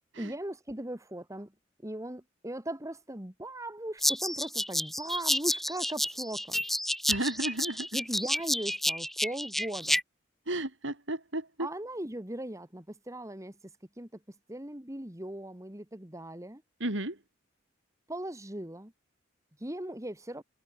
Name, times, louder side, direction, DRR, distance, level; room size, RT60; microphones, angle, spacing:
voice 1, 0.2-1.5 1.8-6.6 7.9-10.0 11.6-13.6 14.0-14.2 14.5-16.6 18.1-18.9 19.6-20.4, right 1 dB, 15° right, 2.3 m, -38 dB
sound 1, 4.0-10.0, equal, ahead, 1.9 m, -30 dB
voice 2, 7.1-7.9 10.5-11.7 16.8-17.2, right 1 dB, 65° right, 4.1 m, -33 dB
head